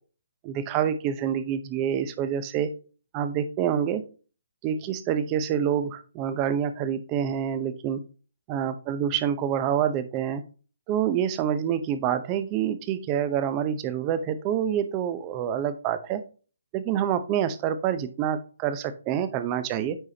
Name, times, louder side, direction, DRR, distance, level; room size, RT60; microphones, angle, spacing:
voice 1, 0.4-2.7 3.1-4.0 4.6-8.0 8.5-10.4 10.9-16.2 16.7-20.0, right 9 dB, 25° right, 11 dB, 0.7 m, -27 dB
9.0 x 4.9 x 2.8 m, 0.37 s
hypercardioid pair, 155°, 0 cm